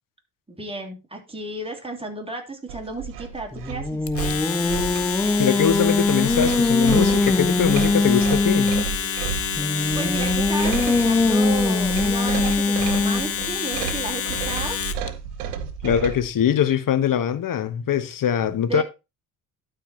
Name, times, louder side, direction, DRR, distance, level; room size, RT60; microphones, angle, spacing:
voice 1, 0.5-4.0 9.9-14.8 18.5-18.8, right 2 dB, 10° right, 3.2 m, -33 dB
sound 1, 2.7-16.3, right 7 dB, 85° right, 1.2 m, -32 dB
Singing, 3.5-8.9 9.6-13.4, left 3 dB, 5° left, 0.4 m, -22 dB
Domestic sounds home sounds, 4.1-15.1, left 7 dB, 30° left, 1.0 m, -29 dB
voice 2, 5.4-8.7 15.8-18.8, left 9 dB, 45° left, 1.3 m, -22 dB
12.0 x 4.7 x 4.4 m
hypercardioid pair, 60°, 45 cm